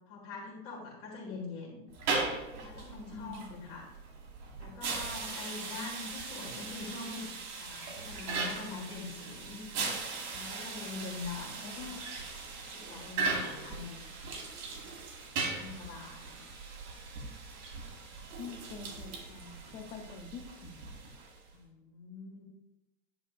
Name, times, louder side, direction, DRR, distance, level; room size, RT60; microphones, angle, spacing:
voice 1, 0.1-1.9 2.6-3.9 4.6-7.3 7.6-9.6 10.3-11.6 12.7-14.3 15.5-16.4 21.5-22.4, left 4 dB, 30° left, -3 dB, 1.8 m, -43 dB
sound 1, 1.9-21.5, right 4 dB, 65° right, 2.1 m, -39 dB
voice 2, 3.1-3.5 11.6-12.0 18.4-20.8, left 5 dB, 15° left, 4 dB, 0.4 m, -45 dB
10.0 x 6.4 x 2.5 m, 0.96 s
supercardioid pair, 160°, 42 cm